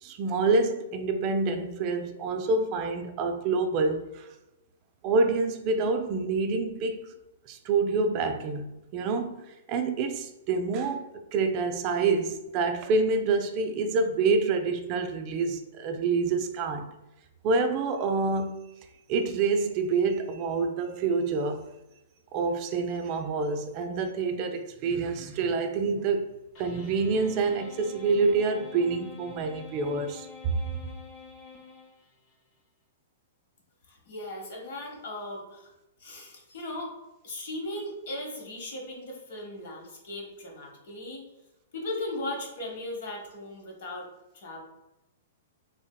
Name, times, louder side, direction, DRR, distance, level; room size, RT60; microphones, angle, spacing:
voice 1, 0.0-4.3 5.0-7.1 7.5-16.9 17.4-18.6 19.1-21.7 22.3-26.3 26.6-30.5, right 4 dB, 40° right, 0.3 m, -27 dB
sound 1, 26.5-32.3, left 5 dB, 35° left, 0.6 m, -47 dB
voice 2, 33.9-35.7 36.0-36.9 37.2-41.2 41.7-44.1 44.3-44.6, left 1 dB, 65° left, 1.0 m, -37 dB
3.2 x 2.7 x 2.2 m
hypercardioid pair, 130°, 0 cm